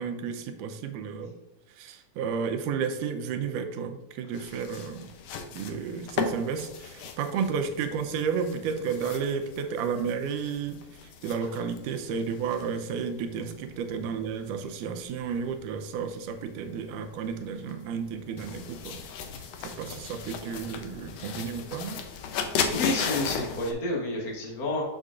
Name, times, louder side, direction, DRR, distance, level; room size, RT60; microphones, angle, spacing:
voice 1, 0.0-1.3 1.8-5.1 5.5-10.8 11.2-19.0 19.6-22.0, right 6 dB, 85° right, 6 dB, 2.2 m, -32 dB
sound 1, 4.3-23.7, left 6 dB, 85° left, 1.4 m, -37 dB
voice 2, 22.4-24.8, left 2 dB, 65° left, -1 dB, 0.8 m, -30 dB
6.5 x 6.5 x 2.4 m, 1.0 s
omnidirectional pair, 3.6 m